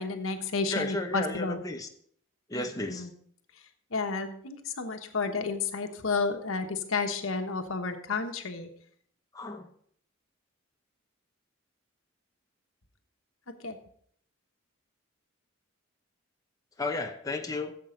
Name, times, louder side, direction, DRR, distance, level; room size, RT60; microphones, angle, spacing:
voice 1, 0.0-1.6 2.5-3.1 3.9-8.7 13.6-13.8, left 4 dB, 85° left, 6 dB, 1.3 m, -31 dB
voice 2, 0.7-1.9 2.5-3.1 9.3-9.7 16.8-17.8, left 2 dB, 15° left, 3 dB, 0.8 m, -33 dB
15.5 x 7.6 x 3.9 m, 0.63 s
head